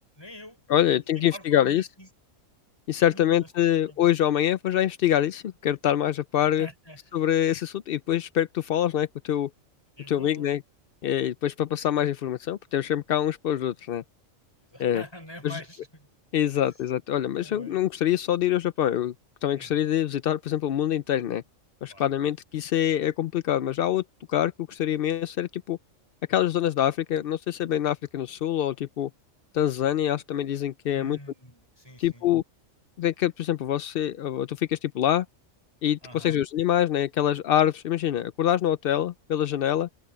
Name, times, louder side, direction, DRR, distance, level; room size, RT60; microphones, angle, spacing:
voice 1, 0.2-0.6 0.9-2.1 3.0-4.1 6.6-7.2 10.0-10.5 14.6-16.1 16.5-16.6 17.4-17.8 19.5-19.9 21.9-22.3 30.9-32.3 36.0-36.4, equal, 20° left, 5.2 m, -46 dB
voice 2, 0.7-1.9 2.9-6.7 7.1-9.5 10.1-10.6 11.0-14.0 14.8-15.0 15.4-15.6 16.3-19.1 19.4-21.4 21.8-24.0 24.3-25.8 26.3-29.1 29.5-31.2 32.0-32.4 33.0-35.3 35.8-39.9, left 11 dB, 60° left, 0.6 m, -25 dB
omnidirectional pair, 1.4 m